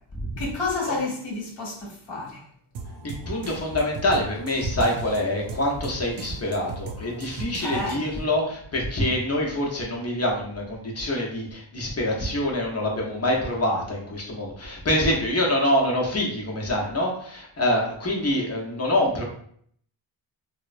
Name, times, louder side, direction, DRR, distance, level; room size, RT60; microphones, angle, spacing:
voice 1, 0.4-2.4 7.6-8.0, left 3 dB, 60° left, -3 dB, 1.2 m, -30 dB
sound 1, 2.7-8.2, right 4 dB, 60° right, 0.5 m, -38 dB
voice 2, 3.0-19.2, left 1 dB, 30° left, -2 dB, 0.8 m, -25 dB
2.9 x 2.1 x 2.5 m, 0.64 s
cardioid pair, 65°, 48 cm